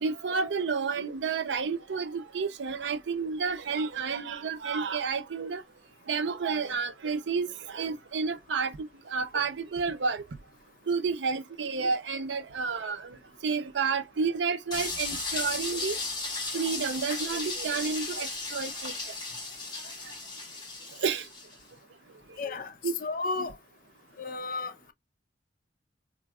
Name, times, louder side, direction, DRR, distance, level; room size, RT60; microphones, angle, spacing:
voice 1, 0.0-5.6 6.1-8.7 9.1-10.2 10.9-13.2 13.4-16.0 16.5-18.9 21.0-21.2 22.5-22.6 22.8-22.9, right 5 dB, 85° right, 0.5 m, -30 dB
sound 1, 14.7-21.5, left 3 dB, 25° left, 1.3 m, -35 dB
voice 2, 22.4-22.7 23.0-23.6 24.2-24.9, left 3 dB, 50° left, 0.4 m, -33 dB
3.9 x 2.5 x 2.3 m
head